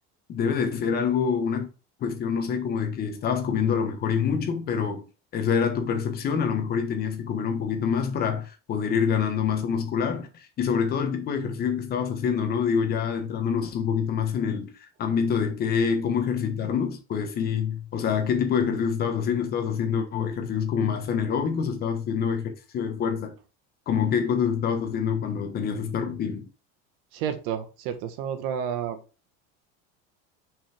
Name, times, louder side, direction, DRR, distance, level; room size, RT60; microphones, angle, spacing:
voice 1, 0.3-1.7 2.0-5.0 5.3-14.7 15.0-23.3 23.9-26.5, left 7 dB, 30° left, 1.3 m, -26 dB
voice 2, 27.1-29.0, right 8 dB, 85° right, 1.7 m, -30 dB
5.6 x 5.4 x 3.5 m
cardioid pair, 170°, 30 cm